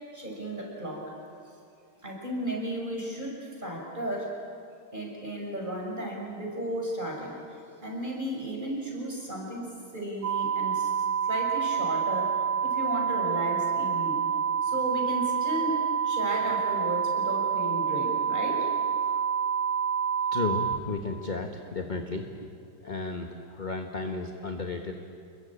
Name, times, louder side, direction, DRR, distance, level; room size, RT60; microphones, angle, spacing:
voice 1, 0.1-1.1 2.0-4.3 4.9-10.9 11.2-14.2 14.6-15.8 16.0-18.7 19.0-19.1, right 1 dB, 20° right, -1 dB, 6.2 m, -34 dB
sound 1, 10.2-20.8, right 7 dB, 55° right, 1.5 m, -27 dB
voice 2, 20.3-22.3 22.8-24.9, left 3 dB, 25° left, 3 dB, 1.3 m, -33 dB
29.5 x 22.0 x 8.8 m, 2.4 s
omnidirectional pair, 2.3 m